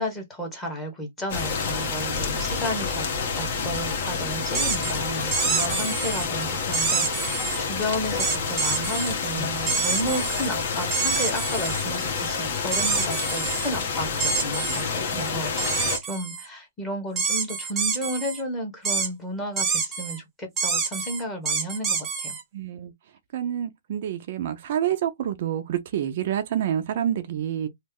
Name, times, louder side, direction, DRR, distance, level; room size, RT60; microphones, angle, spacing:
voice 1, 0.0-3.1 3.3-15.5 16.1-22.4, equal, 10° left, 1.1 m, -32 dB
sound 1, 1.3-16.0, left 5 dB, 45° left, 1.1 m, -28 dB
sound 2, 4.5-4.9 5.3-6.3 6.7-7.6 8.2-9.1 9.7-10.5 10.9-11.9 12.7-13.7 14.2-14.9 15.6-16.5 17.2-18.4 18.9-19.1 19.6-20.2 20.6-22.4, right 5 dB, 10° right, 0.8 m, -27 dB
voice 2, 15.1-15.4 22.5-22.9 23.3-27.7, right 10 dB, 45° right, 0.5 m, -28 dB
3.1 x 2.0 x 3.5 m
hypercardioid pair, 160°, 0 cm